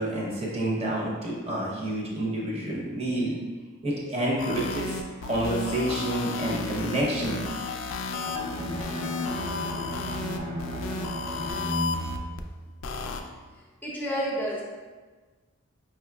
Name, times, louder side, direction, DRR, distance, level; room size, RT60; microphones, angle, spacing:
voice 1, 0.0-3.4 3.8-5.0 5.3-7.4, right 1 dB, 30° right, -4 dB, 0.8 m, -28 dB
sound 1, 4.4-12.4 12.8-13.2, left 3 dB, 65° left, 0.3 m, -33 dB
Bowed string instrument, 8.2-13.2, equal, 85° right, 1.2 m, -35 dB
voice 2, 13.8-14.6, equal, 10° left, -4 dB, 0.6 m, -29 dB
4.8 x 3.0 x 2.3 m, 1.4 s
head